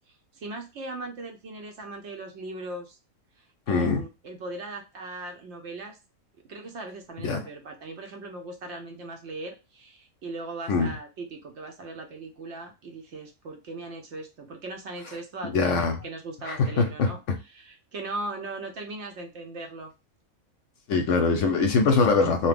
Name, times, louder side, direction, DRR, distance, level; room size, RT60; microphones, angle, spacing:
voice 1, 0.0-3.0 3.4-6.0 6.5-19.9, right 2 dB, 65° right, 0.8 m, -39 dB
voice 2, 3.7-4.0 7.2-7.4 10.7-10.9 15.4-16.0 16.4-17.4 20.9-22.5, left 4 dB, 70° left, 0.8 m, -23 dB
2.9 x 2.1 x 3.3 m
omnidirectional pair, 1.5 m